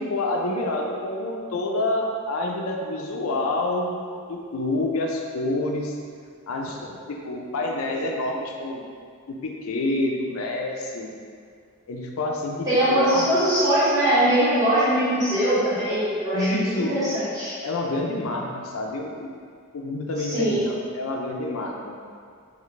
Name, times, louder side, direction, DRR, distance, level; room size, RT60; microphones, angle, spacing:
voice 1, 0.0-4.0 4.3-6.0 6.5-8.8 9.3-11.1 11.9-13.3 16.3-17.0 17.6-19.3 19.7-22.0, left 2 dB, 75° left, 1 dB, 0.4 m, -28 dB
voice 2, 12.6-17.5 20.3-20.6, right 1 dB, 15° right, -12 dB, 1.4 m, -21 dB
4.0 x 3.2 x 3.2 m, 2.1 s
head